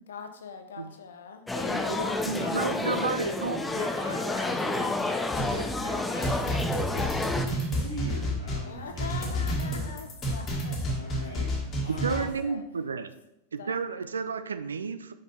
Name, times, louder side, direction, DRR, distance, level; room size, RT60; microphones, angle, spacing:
voice 1, 0.1-1.4 1.7-2.4 8.6-11.1 12.1-12.6 13.6-13.7, left 5 dB, 65° left, 6 dB, 0.8 m, -42 dB
voice 2, 1.4-3.4 3.7-9.9 10.8-12.2, equal, 85° left, -5 dB, 1.2 m, -39 dB
sound 1, 1.5-7.5, left 2 dB, 10° left, 0.5 m, -30 dB
voice 3, 2.2-3.6 11.9-13.1 13.5-15.1, right 5 dB, 70° right, 11 dB, 0.4 m, -31 dB
sound 2, 5.3-12.2, equal, 25° left, 1.6 m, -31 dB
5.2 x 5.2 x 4.3 m, 0.86 s
figure-of-eight pair, 90°, 0 cm